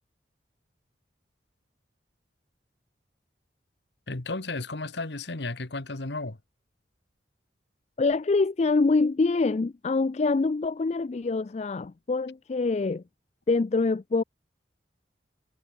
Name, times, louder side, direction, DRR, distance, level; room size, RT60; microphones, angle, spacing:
voice 1, 4.1-6.4, left 3 dB, 65° left, 1.4 m, -33 dB
voice 2, 8.0-13.0 13.5-14.2, left 3 dB, 35° left, 0.4 m, -25 dB
head